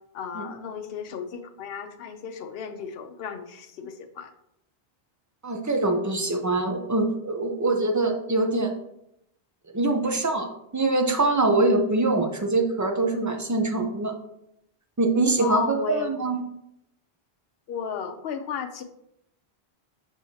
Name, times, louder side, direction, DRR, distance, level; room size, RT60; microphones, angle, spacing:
voice 1, 0.1-4.3 15.4-16.1 17.7-18.8, left 7 dB, 70° left, 7 dB, 0.8 m, -34 dB
voice 2, 5.4-8.7 9.7-14.1 15.0-16.4, right 2 dB, 20° right, 4 dB, 0.6 m, -24 dB
6.1 x 6.1 x 2.8 m, 0.80 s
omnidirectional pair, 1.1 m